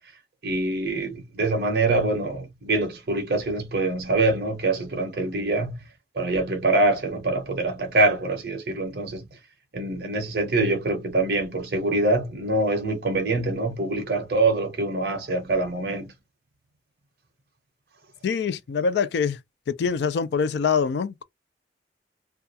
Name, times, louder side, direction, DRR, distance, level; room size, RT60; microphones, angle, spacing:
voice 1, 0.4-5.7 6.2-9.3 9.7-16.1, right 2 dB, 60° right, 0.6 m, -24 dB
voice 2, 18.2-19.4 19.7-21.2, left 6 dB, 70° left, 0.3 m, -24 dB
2.3 x 2.2 x 2.6 m
head